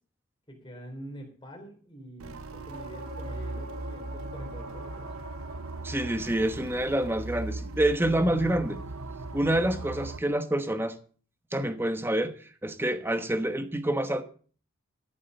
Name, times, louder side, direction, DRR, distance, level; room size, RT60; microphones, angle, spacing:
voice 1, 0.5-5.1, right 1 dB, 20° left, 3.7 m, -45 dB
sound 1, 2.2-10.2, right 2 dB, 90° right, 0.9 m, -38 dB
sound 2, 2.7-6.4 10.1-10.2, left 1 dB, 30° right, 2.8 m, -46 dB
voice 2, 5.8-8.8 9.3-11.0 11.5-14.2, right 1 dB, 10° right, 1.0 m, -27 dB
13.5 x 7.4 x 6.7 m
head